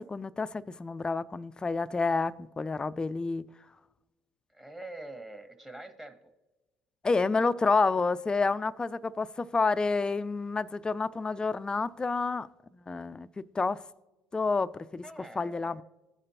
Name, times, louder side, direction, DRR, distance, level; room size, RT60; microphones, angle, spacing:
voice 1, 0.0-3.5 7.0-12.5 12.9-13.8 14.3-15.0 15.4-15.8, left 4 dB, 20° left, 0.4 m, -29 dB
voice 2, 4.5-6.2 15.0-15.8, right 1 dB, 10° right, 1.3 m, -45 dB
14.5 x 5.0 x 2.8 m
hypercardioid pair, 70°, 4 cm